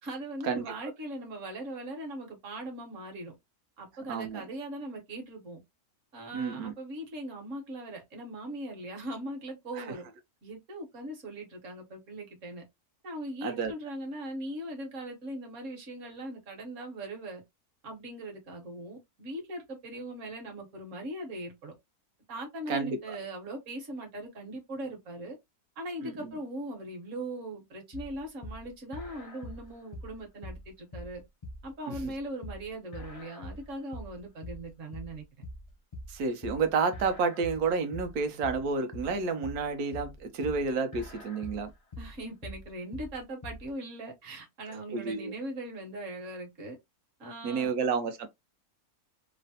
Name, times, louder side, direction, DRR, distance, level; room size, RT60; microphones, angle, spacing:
voice 1, 0.0-3.3 3.8-5.6 6.1-10.0 10.4-12.6 13.0-17.4 17.8-21.7 22.3-25.4 25.8-31.2 31.6-35.2 42.0-46.8 47.2-47.7, right 1 dB, 60° right, 1.3 m, -40 dB
voice 2, 4.1-4.5 6.3-6.7 9.8-9.9 13.4-13.7 22.7-23.2 26.0-26.4 31.9-32.1 36.1-41.7 44.9-45.3 47.4-48.3, right 4 dB, 75° right, 1.1 m, -30 dB
sound 1, 27.9-43.7, left 1 dB, 45° left, 0.5 m, -44 dB
3.2 x 2.1 x 2.6 m
omnidirectional pair, 1.6 m